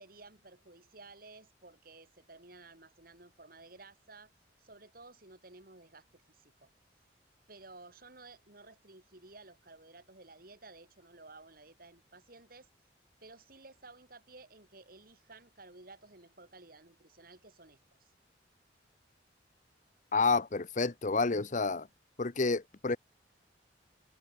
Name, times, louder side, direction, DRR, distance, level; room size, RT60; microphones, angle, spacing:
voice 1, 0.0-4.3 4.6-6.7 7.5-12.7 13.2-18.1, right 3 dB, 55° right, 4.3 m, -55 dB
voice 2, 20.1-21.9 22.2-23.0, left 4 dB, 45° left, 0.8 m, -29 dB
head